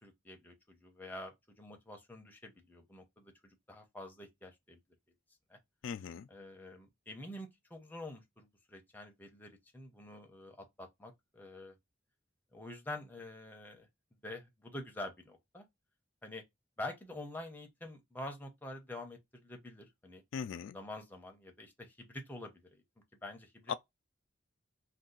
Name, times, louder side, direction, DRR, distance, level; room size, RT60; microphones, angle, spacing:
voice 1, 0.0-4.8 5.5-5.6 6.3-11.7 12.5-13.9 14.2-15.6 16.2-16.4 16.8-20.2 20.7-22.8 23.2-23.7, left 1 dB, 10° left, 0.6 m, -47 dB
voice 2, 5.8-6.3 20.3-20.8 23.7-23.8, left 7 dB, 75° left, 0.3 m, -38 dB
2.7 x 2.3 x 3.7 m
head